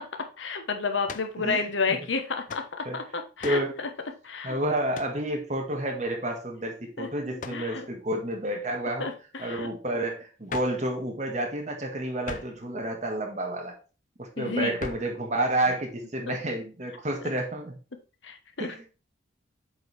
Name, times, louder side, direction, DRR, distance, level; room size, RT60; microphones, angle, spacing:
voice 1, 0.4-3.9 4.2-4.6 7.0-7.9 9.0-9.7 14.4-14.8 15.7-15.8 16.3-16.4 17.2-17.3 18.2-18.9, left 4 dB, 85° left, 6 dB, 1.1 m, -31 dB
sound 1, 1.1-1.4 2.5-2.7 3.4-3.7 4.9-5.2 7.4-7.7 10.5-10.9 12.2-12.6 14.8-15.2, left 4 dB, 45° left, 0.5 m, -39 dB
voice 2, 1.4-1.7 2.8-3.0 3.4-3.7 4.4-9.1 9.4-13.7 14.2-17.7 18.6-18.8, right 1 dB, 40° right, 2 dB, 1.6 m, -30 dB
7.8 x 4.7 x 3.3 m, 0.33 s
head